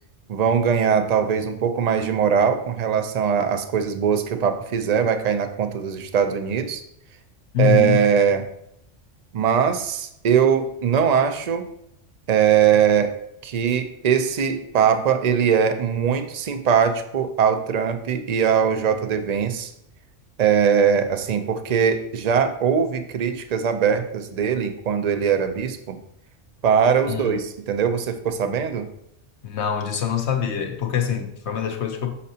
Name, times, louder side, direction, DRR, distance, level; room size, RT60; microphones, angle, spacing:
voice 1, 0.3-6.8 7.6-8.5 9.3-11.7 12.3-13.1 13.4-19.7 20.4-26.0 26.6-28.9, right 7 dB, 45° right, 0.6 m, -21 dB
voice 2, 7.5-8.0 27.1-27.4 29.4-32.2, left 9 dB, 65° left, 1.1 m, -24 dB
8.4 x 6.4 x 2.8 m
omnidirectional pair, 1.3 m